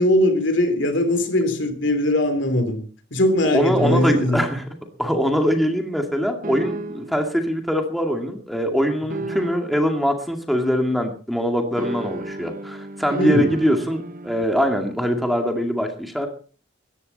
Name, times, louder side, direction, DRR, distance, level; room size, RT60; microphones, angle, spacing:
voice 1, 0.0-2.8 3.1-4.4 13.2-13.5, left 1 dB, 70° left, 3.3 m, -20 dB
voice 2, 3.4-4.7 5.0-16.3, equal, ahead, 2.2 m, -22 dB
sound 1, 3.8-4.6 6.4-7.2 9.1-9.9 11.8-14.5, right 2 dB, 45° right, 1.1 m, -32 dB
19.0 x 14.5 x 4.2 m
head